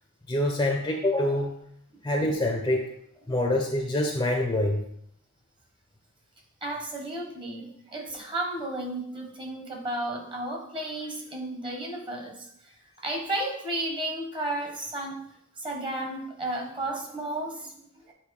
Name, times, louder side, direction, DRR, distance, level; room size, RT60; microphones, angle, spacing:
voice 1, 0.3-1.5 2.0-2.9 3.3-4.8, left 1 dB, 20° left, 1 dB, 0.7 m, -25 dB
voice 2, 6.6-12.7 13.0-15.2 15.6-18.1, right 1 dB, 25° right, 1 dB, 1.3 m, -33 dB
8.3 x 3.2 x 4.8 m, 0.68 s
head